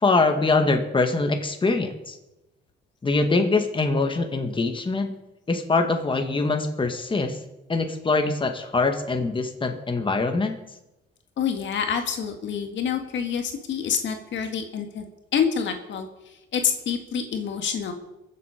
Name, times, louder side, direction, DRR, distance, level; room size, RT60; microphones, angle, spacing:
voice 1, 0.0-2.1 3.0-5.1 5.5-7.4 7.7-10.6, left 3 dB, 25° left, 5 dB, 1.8 m, -23 dB
voice 2, 11.4-15.1 15.3-17.9, left 7 dB, 70° left, 5 dB, 1.8 m, -27 dB
22.5 x 7.7 x 5.1 m, 0.95 s
cardioid pair, 90°, 20 cm